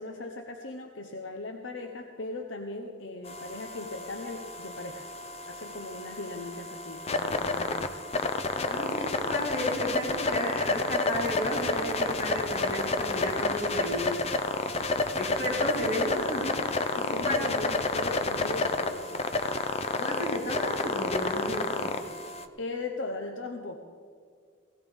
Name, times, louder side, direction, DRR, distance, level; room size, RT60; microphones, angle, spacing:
voice 1, 0.0-5.1 5.5-8.0 16.9-19.5 22.6-23.8, left 3 dB, 80° left, 4 dB, 0.9 m, -38 dB
sound 1, 3.2-22.4, left 3 dB, 35° left, 0.6 m, -30 dB
voice 2, 8.6-14.2 15.2-17.5 20.0-22.0, equal, 50° left, -5 dB, 4.7 m, -33 dB
17.5 x 16.0 x 3.6 m, 2.2 s
head